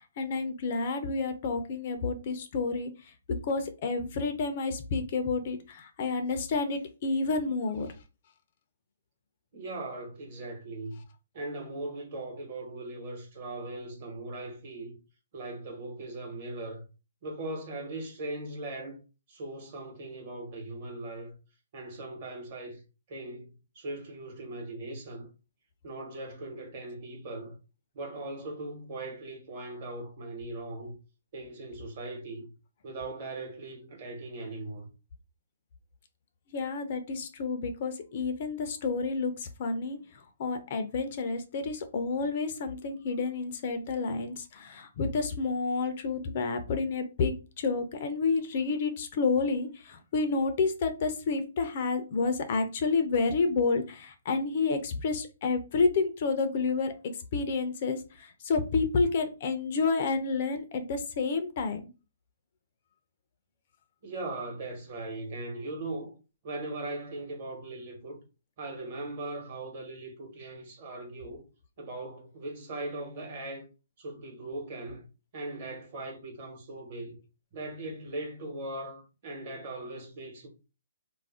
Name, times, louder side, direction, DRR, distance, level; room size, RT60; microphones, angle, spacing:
voice 1, 0.0-2.9 3.5-7.9 36.5-40.0 40.4-56.9 57.3-61.8, left 4 dB, 40° left, 0.4 m, -29 dB
voice 2, 9.5-11.0 11.3-15.0 15.3-16.9 17.2-19.0 19.3-21.4 21.7-22.8 23.1-23.5 23.7-25.3 25.8-27.6 27.9-31.0 31.3-32.4 32.8-34.9 64.0-66.1 66.4-68.2 68.6-71.5 71.8-73.7 74.0-75.1 75.3-77.2 77.5-80.5, right 2 dB, 40° right, 1.0 m, -39 dB
2.4 x 2.0 x 3.5 m
hypercardioid pair, 165°, 0 cm